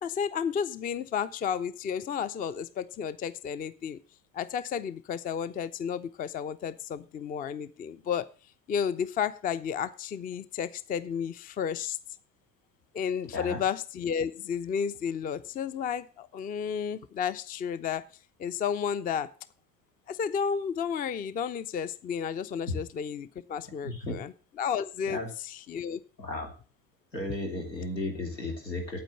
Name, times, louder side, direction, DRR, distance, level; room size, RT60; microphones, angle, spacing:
voice 1, 0.0-4.0 4.3-8.3 8.7-12.0 12.9-18.0 18.4-19.3 20.1-24.3 24.6-26.0, left 7 dB, 20° left, 18 dB, 0.5 m, -32 dB
voice 2, 23.8-24.2 25.0-25.3 26.2-26.5 27.1-29.0, left 2 dB, 85° left, 3 dB, 2.7 m, -34 dB
9.0 x 8.8 x 7.0 m, 0.38 s
figure-of-eight pair, 70°, 49 cm